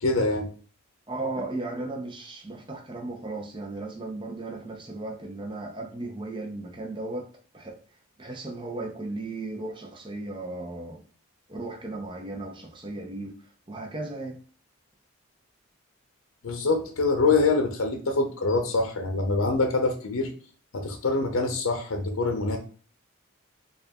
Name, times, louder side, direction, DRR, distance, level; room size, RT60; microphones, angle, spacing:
voice 1, 0.0-0.5 16.4-20.3 20.7-22.6, left 3 dB, 80° left, 0.6 m, -25 dB
voice 2, 1.1-11.0 11.5-13.4 13.7-14.4, right 2 dB, 20° right, 0.5 m, -36 dB
3.8 x 2.4 x 3.5 m
head